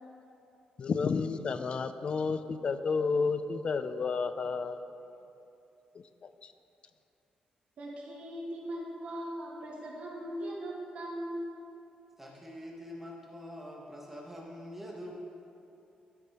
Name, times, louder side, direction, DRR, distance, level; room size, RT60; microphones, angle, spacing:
voice 1, 0.8-4.8, left 5 dB, 40° left, 11 dB, 0.4 m, -31 dB
voice 2, 7.8-11.6, equal, 55° right, -3 dB, 2.1 m, -39 dB
voice 3, 12.2-15.3, equal, 10° right, -3 dB, 1.3 m, -44 dB
12.0 x 6.6 x 4.9 m, 2.8 s
cardioid pair, 140°, 3 cm